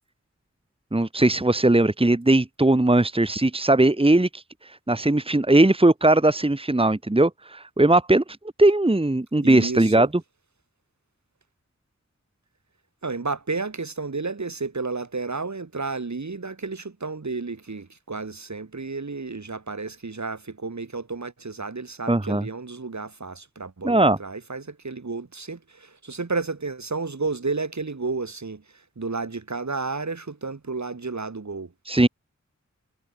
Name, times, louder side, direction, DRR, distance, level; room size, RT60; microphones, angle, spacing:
voice 1, 0.9-4.4 4.9-8.2 8.6-10.1 22.1-22.5 23.8-24.2 31.9-32.1, right 2 dB, 20° right, 1.6 m, -19 dB
voice 2, 9.4-10.1 13.0-28.6 29.0-31.7, right 4 dB, 70° right, 6.1 m, -32 dB
wide cardioid pair, 70°, 29 cm